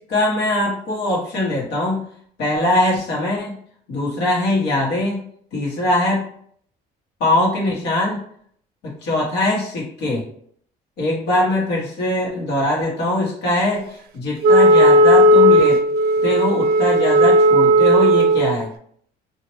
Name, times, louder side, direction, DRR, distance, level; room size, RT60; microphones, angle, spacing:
voice 1, 0.1-2.0 2.4-3.6 3.9-5.2 5.5-6.3 7.2-8.2 8.8-10.2 11.0-15.8 16.2-18.7, left 1 dB, 80° left, -4 dB, 1.2 m, -21 dB
Wind instrument woodwind instrument, 14.4-18.6, equal, 70° right, 0.5 m, -14 dB
2.9 x 2.5 x 3.1 m, 0.62 s
cardioid pair, 110°, 17 cm